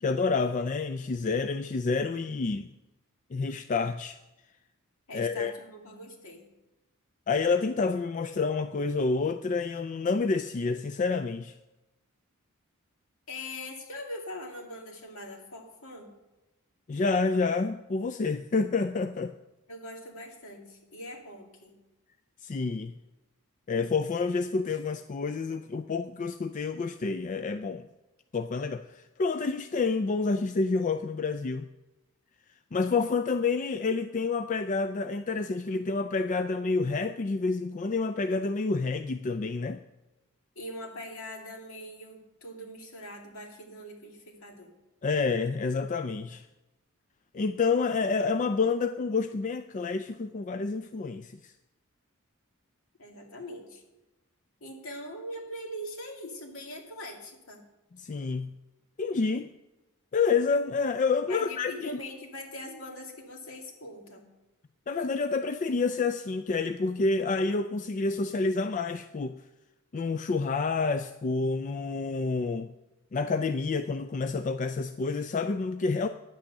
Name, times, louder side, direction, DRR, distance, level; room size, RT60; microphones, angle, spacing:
voice 1, 0.0-2.7 3.3-4.2 5.1-5.5 7.3-11.6 16.9-19.4 22.4-22.9 23.7-27.9 28.3-31.7 32.7-39.8 45.0-46.5 47.3-51.5 57.9-58.5 59.0-59.5 60.1-62.0 64.9-69.4 69.9-72.7 73.1-76.1, left 4 dB, 35° left, 9 dB, 0.4 m, -28 dB
voice 2, 5.1-6.4 13.3-16.1 19.7-21.7 40.6-44.7 53.0-53.8 54.6-57.6 61.3-64.2, left 1 dB, 70° left, 2 dB, 2.3 m, -42 dB
10.5 x 8.7 x 6.6 m, 1.0 s
head